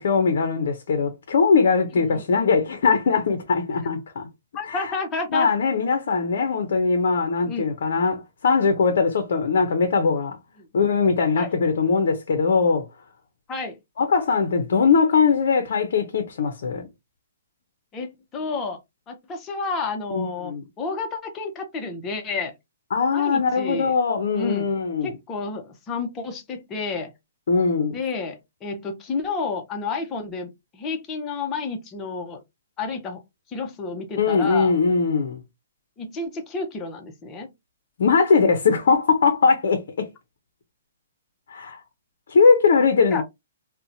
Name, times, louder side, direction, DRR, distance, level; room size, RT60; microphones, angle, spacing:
voice 1, 0.0-4.3 4.7-4.9 5.3-10.4 10.7-12.9 14.0-16.9 20.1-20.6 22.9-25.1 27.5-28.0 34.2-35.4 38.0-40.1 41.5-41.8 42.3-43.2, left 5 dB, 65° left, 0.5 m, -21 dB
voice 2, 4.5-5.5 7.5-7.7 10.6-10.7 11.4-11.5 13.5-13.8 17.9-18.8 19.1-22.5 23.1-23.9 24.3-24.7 25.0-27.1 27.9-32.4 32.8-33.2 33.5-34.7 36.0-37.5 43.1-43.2, left 4 dB, 20° left, 0.6 m, -30 dB
2.6 x 2.1 x 2.6 m
hypercardioid pair, 150°, 0 cm